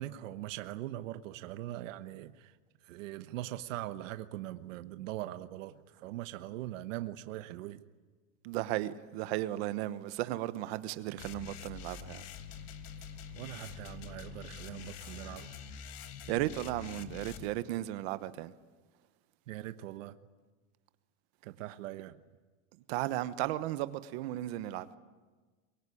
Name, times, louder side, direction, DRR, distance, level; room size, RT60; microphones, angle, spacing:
voice 1, 0.0-2.6 2.8-7.8 13.3-15.5 19.5-20.1 21.4-22.2, right 14 dB, 65° right, 1.2 m, -41 dB
voice 2, 8.4-12.2 16.3-18.5 22.9-24.9, right 15 dB, 50° right, 1.1 m, -35 dB
sound 1, 11.2-17.5, left 7 dB, 40° left, 1.6 m, -46 dB
23.5 x 23.5 x 9.9 m
supercardioid pair, 160°, 41 cm